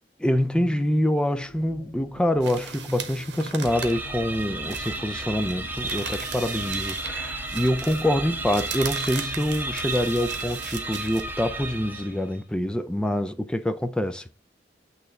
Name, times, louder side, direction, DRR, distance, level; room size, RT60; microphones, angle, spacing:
voice 1, 0.2-14.3, left 1 dB, 5° left, 0.4 m, -26 dB
sound 1, 1.4-12.2, left 3 dB, 70° left, 0.6 m, -47 dB
sound 2, 2.4-7.2 7.4-11.2, right 7 dB, 80° right, 0.9 m, -38 dB
sound 3, 3.6-12.3, right 2 dB, 10° right, 0.7 m, -33 dB
8.4 x 3.2 x 3.6 m
head